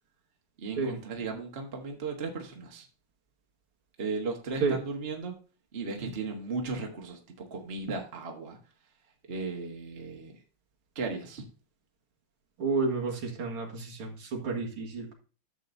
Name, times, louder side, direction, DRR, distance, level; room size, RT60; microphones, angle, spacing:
voice 1, 0.6-2.9 4.0-5.4 5.7-8.6 9.3-10.3 10.9-11.4, right 4 dB, 30° right, 2 dB, 1.4 m, -36 dB
voice 2, 12.6-15.1, right 4 dB, 80° right, 0 dB, 2.6 m, -30 dB
11.5 x 7.4 x 2.7 m, 0.36 s
omnidirectional pair, 2.4 m